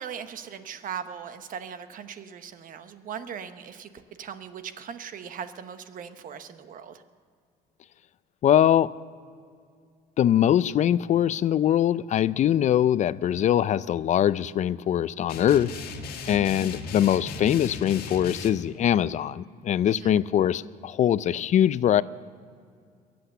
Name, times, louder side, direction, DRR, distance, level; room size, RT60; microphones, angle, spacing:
voice 1, 0.0-7.0 16.2-16.7 19.9-20.2, right 8 dB, 55° right, 11 dB, 1.0 m, -39 dB
voice 2, 8.4-8.9 10.2-15.7 16.3-22.0, left 10 dB, 45° left, 18 dB, 0.4 m, -22 dB
sound 1, 15.3-18.5, left 4 dB, 65° left, 1.6 m, -37 dB
22.5 x 8.0 x 6.8 m, 2.2 s
cardioid pair, 110°, 17 cm